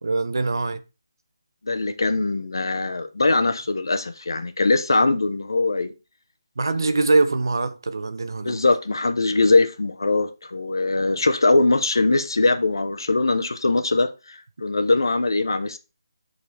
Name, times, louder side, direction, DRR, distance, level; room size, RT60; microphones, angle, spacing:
voice 1, 0.0-0.8 6.6-8.6, right 3 dB, 65° right, 0.9 m, -23 dB
voice 2, 1.6-5.9 6.7-6.9 8.4-15.8, left 3 dB, 75° left, 1.1 m, -21 dB
9.8 x 4.1 x 3.4 m
hypercardioid pair, 175°, 2 cm